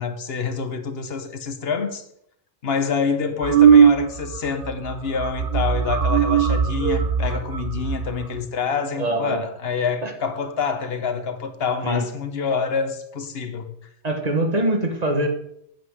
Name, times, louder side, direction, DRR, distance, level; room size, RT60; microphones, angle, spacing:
voice 1, 0.0-2.0 2.6-13.7, left 5 dB, 70° left, 1.1 m, -27 dB
sound 1, 3.4-4.4 4.6-4.9 5.2-8.4, right 7 dB, 60° right, 1.0 m, -18 dB
voice 2, 9.0-9.4 10.0-10.1 11.8-12.1 14.0-15.3, right 1 dB, 40° right, 1.5 m, -23 dB
8.4 x 7.8 x 4.8 m
omnidirectional pair, 1.1 m